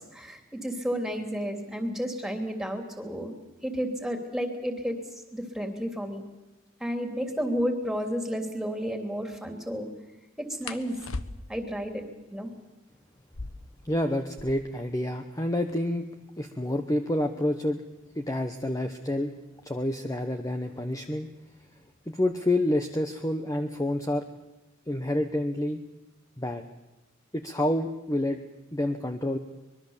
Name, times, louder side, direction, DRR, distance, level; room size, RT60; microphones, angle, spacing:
voice 1, 0.0-3.3 3.6-5.0 5.3-6.2 6.8-9.9 10.4-11.0 11.5-12.0 12.3-12.5, equal, ahead, 4 dB, 3.0 m, -31 dB
sound 1, 7.9-8.2 10.6-11.7 13.2-14.8 15.1-15.2 15.4-16.0 16.6-19.2 20.2-20.5 20.9-21.4 21.7-22.5, left 3 dB, 90° left, 1.2 m, -42 dB
voice 2, 13.8-16.1 16.4-17.8 18.1-19.3 19.6-21.3 22.1-24.3 24.9-25.8 26.4-26.6 27.3-28.4 28.7-29.4, left 1 dB, 15° left, 6 dB, 1.0 m, -28 dB
24.5 x 21.5 x 7.3 m, 1.1 s
head